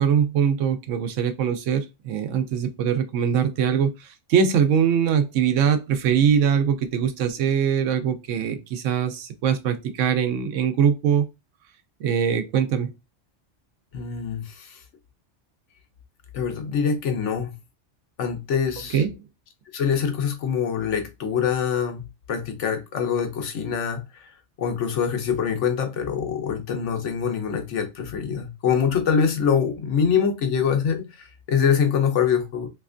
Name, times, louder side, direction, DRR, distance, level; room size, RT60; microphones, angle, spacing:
voice 1, 0.0-11.2 12.0-12.9 18.9-19.2, right 7 dB, 85° right, 1.0 m, -22 dB
voice 2, 13.9-14.8 16.3-17.5 18.2-19.0 19.7-24.3 24.6-32.7, left 7 dB, 75° left, 1.1 m, -24 dB
3.2 x 2.9 x 2.4 m
omnidirectional pair, 1.3 m